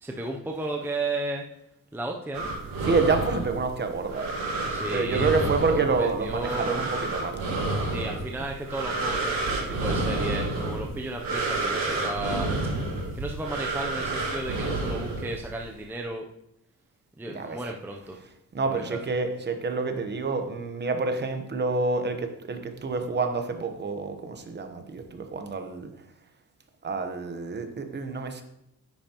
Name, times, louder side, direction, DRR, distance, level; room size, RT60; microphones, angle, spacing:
voice 1, 0.0-1.5 1.9-2.5 4.7-7.0 7.9-12.5 13.1-16.2 17.2-18.2 18.6-19.0, right 2 dB, 5° right, 1 dB, 0.5 m, -34 dB
sound 1, 2.3-15.6, right 2 dB, 90° right, 2.7 m, -30 dB
voice 2, 2.8-4.3 4.9-7.4 17.3-17.6 18.5-25.9 26.8-28.4, right 4 dB, 30° right, 6 dB, 1.0 m, -28 dB
10.0 x 8.9 x 2.9 m, 0.84 s
wide cardioid pair, 165°, 35 cm